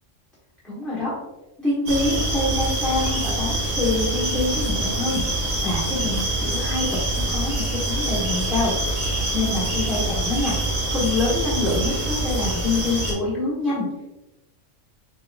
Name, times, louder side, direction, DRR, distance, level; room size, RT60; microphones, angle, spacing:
voice 1, 0.6-1.1 1.6-6.9 7.1-8.7 9.1-10.5 10.9-13.9, left 2 dB, ahead, -10 dB, 1.1 m, -26 dB
sound 1, 1.9-13.1, right 1 dB, 90° right, 1.6 m, -25 dB
4.4 x 3.8 x 2.3 m, 0.99 s
omnidirectional pair, 1.4 m